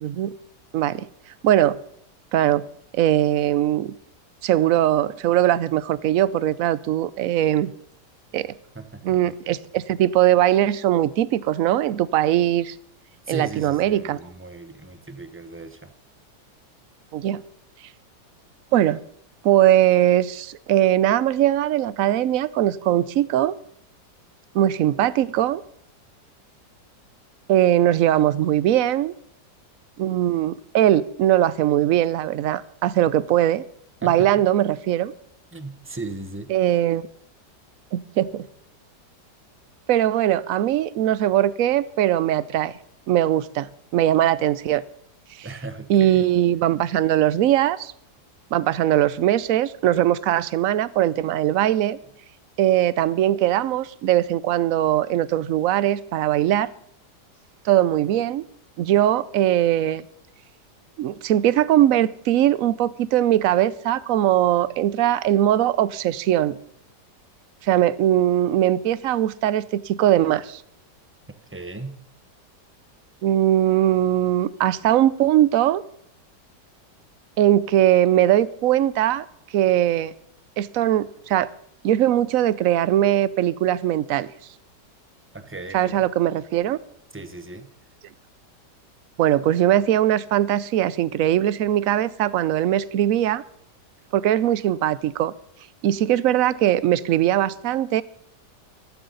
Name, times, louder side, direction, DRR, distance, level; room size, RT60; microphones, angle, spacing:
voice 1, 0.0-0.3 0.7-1.1 1.4-1.8 2.3-2.6 2.9-3.9 4.4-7.7 8.3-8.5 9.0-12.8 13.3-14.2 17.1-17.4 18.7-19.0 19.4-23.5 24.5-25.6 27.5-29.1 30.0-33.6 34.0-35.1 36.5-37.0 37.9-38.5 39.9-42.7 43.1-44.8 45.4-45.5 45.9-47.9 48.5-52.0 52.6-56.7 57.6-58.4 58.8-60.0 61.0-66.6 67.6-70.6 73.2-75.8 77.4-79.3 79.5-80.1 80.6-81.5 81.8-84.3 85.7-86.8 89.2-93.4 94.1-95.3 95.8-98.0, right 12 dB, 65° right, 18 dB, 0.9 m, -20 dB
voice 2, 8.7-9.3 13.3-15.9 34.0-34.4 35.5-36.5 45.4-46.3 71.5-72.0 85.3-86.0 87.1-87.7, right 3 dB, 10° right, 8 dB, 0.7 m, -36 dB
14.5 x 13.5 x 4.0 m, 0.71 s
omnidirectional pair, 1.9 m